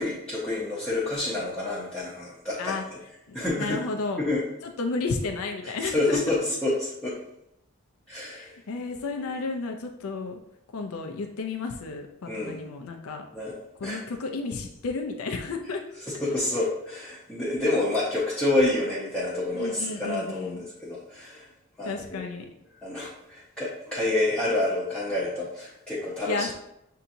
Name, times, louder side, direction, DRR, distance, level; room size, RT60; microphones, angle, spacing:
voice 1, 0.0-2.7 3.3-3.8 4.2-4.4 5.8-7.2 8.1-8.6 12.3-12.6 13.3-13.5 13.8-14.0 16.1-21.5 21.8-22.2 22.8-26.5, left 2 dB, 5° left, -9 dB, 0.7 m, -28 dB
voice 2, 3.3-4.2 4.6-6.4 8.3-10.4 10.7-13.2 13.8-15.8 19.5-20.7 21.8-22.5 26.3-26.5, left 3 dB, 80° left, 4 dB, 0.5 m, -32 dB
6.7 x 2.8 x 2.6 m, 0.81 s
head